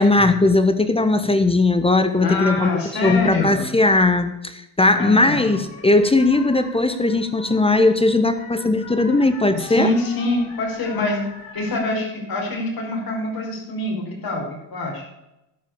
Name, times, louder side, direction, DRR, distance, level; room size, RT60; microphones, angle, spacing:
voice 1, 0.0-9.9, left 2 dB, 15° left, 10 dB, 1.0 m, -18 dB
voice 2, 2.2-3.7 5.0-5.6 9.5-15.0, left 2 dB, 55° left, -1 dB, 5.4 m, -25 dB
sound 1, 5.0-11.7, left 4 dB, 90° left, 4.1 m, -42 dB
12.5 x 5.6 x 8.5 m, 0.88 s
cardioid pair, 90°, 43 cm